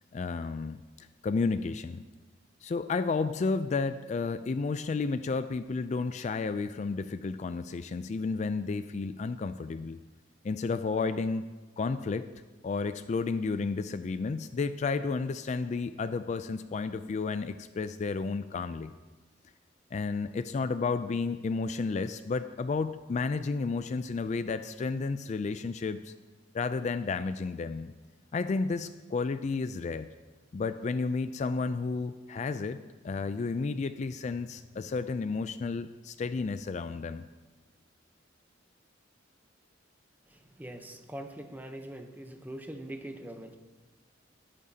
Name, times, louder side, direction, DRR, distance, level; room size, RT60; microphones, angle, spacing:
voice 1, 0.1-2.0 2.6-10.0 10.4-12.3 12.6-18.9 19.9-26.1 26.5-27.9 28.3-30.1 30.5-37.3, left 4 dB, 40° left, 11 dB, 0.3 m, -32 dB
voice 2, 40.6-43.6, right 1 dB, 10° right, 5 dB, 0.8 m, -42 dB
19.5 x 8.6 x 2.8 m, 1.2 s
head